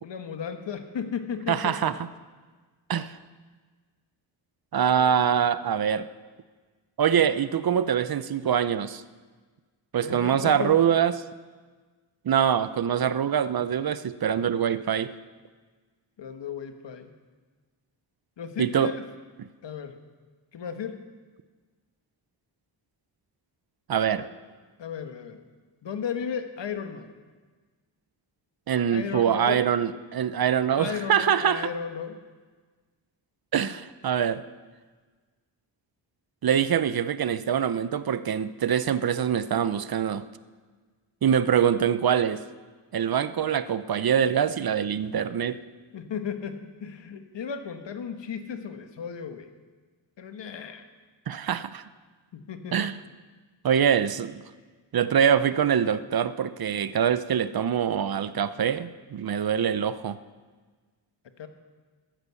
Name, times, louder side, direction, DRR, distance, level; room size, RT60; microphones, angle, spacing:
voice 1, 0.0-1.9 4.8-5.1 10.0-10.8 16.2-17.1 18.4-19.0 19.6-20.0 20.5-21.0 24.2-24.3 24.8-25.4 25.8-27.1 28.9-29.6 30.8-32.2 45.9-49.5 50.2-50.8 52.3-52.9 61.4-61.5, left 7 dB, 75° left, 7 dB, 1.4 m, -35 dB
voice 2, 1.5-2.1 2.9-3.2 4.7-6.1 7.0-9.0 9.9-11.2 12.2-15.1 18.6-18.9 19.4-19.5 23.9-24.3 28.7-31.7 33.5-34.4 36.4-40.3 41.2-42.4 42.9-45.6 51.3-51.8 52.7-53.0 53.6-54.4 54.9-60.2, right 8 dB, 55° right, 14 dB, 0.7 m, -24 dB
14.5 x 10.5 x 7.0 m, 1.4 s
cardioid pair, 75°, 44 cm